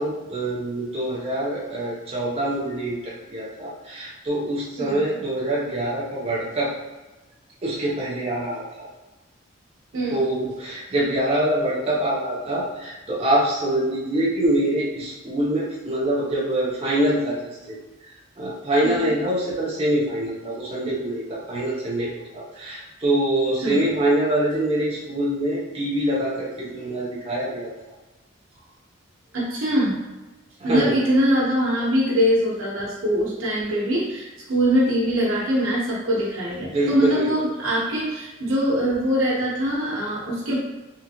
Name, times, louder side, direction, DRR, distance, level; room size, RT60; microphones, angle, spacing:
voice 1, 0.0-6.7 7.6-8.9 10.1-17.4 17.7-17.8 18.4-27.7 30.6-31.0 36.6-37.3, right 1 dB, 30° right, -6 dB, 0.6 m, -24 dB
voice 2, 18.8-19.2 23.6-23.8 29.3-30.0 30.6-40.6, equal, 85° right, -5 dB, 1.1 m, -23 dB
3.7 x 2.4 x 2.9 m, 1.1 s
head